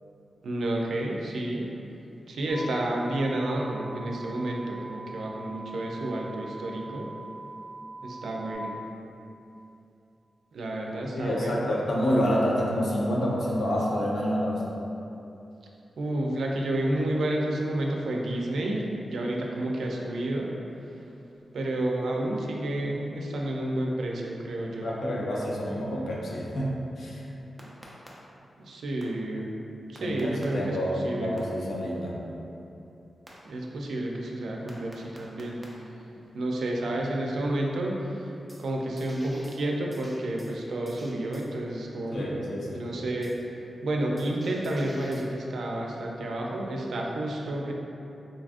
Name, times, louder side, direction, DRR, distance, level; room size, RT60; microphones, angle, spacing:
voice 1, 0.4-1.7 2.3-7.1 8.0-8.8 10.5-11.7 16.0-20.5 21.5-24.9 28.6-29.5 29.9-30.8 31.0-31.4 33.4-35.6 36.3-38.3 38.6-42.4 42.7-43.3 43.8-47.7, right 1 dB, 90° right, -1 dB, 0.4 m, -30 dB
sound 1, 2.5-8.5, right 2 dB, 35° left, 1.1 m, -43 dB
voice 2, 11.2-14.6 24.8-27.2 30.0-32.2 42.1-42.8, equal, 75° left, -4 dB, 0.5 m, -28 dB
sound 2, 27.6-28.1 29.0-29.1 30.0-30.4 31.4-31.5 33.3-33.4 34.7-35.6 38.5-38.6 39.0-39.6 39.9-40.5 40.9-41.5 43.2-43.4 44.2-45.3, equal, 5° right, 0.4 m, -50 dB
3.9 x 2.3 x 2.5 m, 2.8 s
wide cardioid pair, 145°, 0 cm